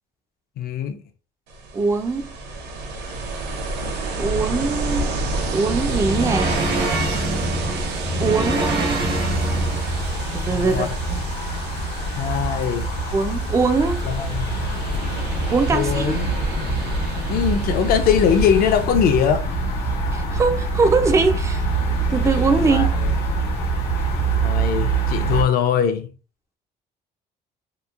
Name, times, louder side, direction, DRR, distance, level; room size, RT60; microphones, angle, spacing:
voice 1, 0.6-1.0 10.4-10.9 12.1-12.9 14.0-14.6 15.7-16.3 17.3-19.4 22.6-23.1 24.1-26.1, left 8 dB, 65° left, 0.5 m, -22 dB
Ocean, 1.5-18.9, right 2 dB, 85° right, 0.6 m, -30 dB
voice 2, 1.7-2.3 4.2-5.1 5.5-6.5 8.2-9.0 10.3-11.2 13.1-14.0 15.5-16.2 20.1-21.6 22.1-22.9, right 4 dB, 20° right, 0.3 m, -21 dB
sound 1, 5.3-10.1, right 1 dB, 65° right, 1.0 m, -25 dB
sound 2, 8.2-25.4, right 3 dB, 80° left, 0.8 m, -25 dB
2.9 x 2.1 x 2.4 m
cardioid pair, 110°, 17 cm